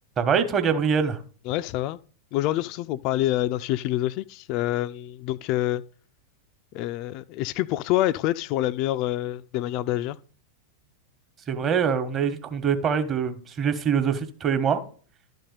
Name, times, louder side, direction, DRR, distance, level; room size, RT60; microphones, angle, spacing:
voice 1, 0.2-1.2 11.5-14.8, right 7 dB, 25° right, 1.2 m, -24 dB
voice 2, 1.5-2.0 2.3-5.8 6.7-10.2, left 15 dB, 40° left, 0.4 m, -26 dB
11.5 x 4.2 x 6.7 m
figure-of-eight pair, 90°, 0 cm